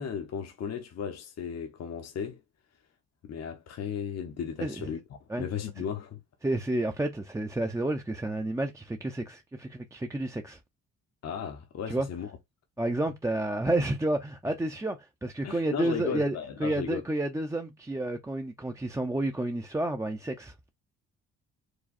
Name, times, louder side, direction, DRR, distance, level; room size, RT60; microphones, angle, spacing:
voice 1, 0.0-2.4 3.2-6.2 11.2-12.3 15.4-17.0, left 7 dB, 60° left, 1.0 m, -35 dB
voice 2, 6.4-10.6 11.9-12.1 12.8-20.5, right 1 dB, 10° right, 0.6 m, -30 dB
4.9 x 2.3 x 4.2 m
cardioid pair, 90°, 30 cm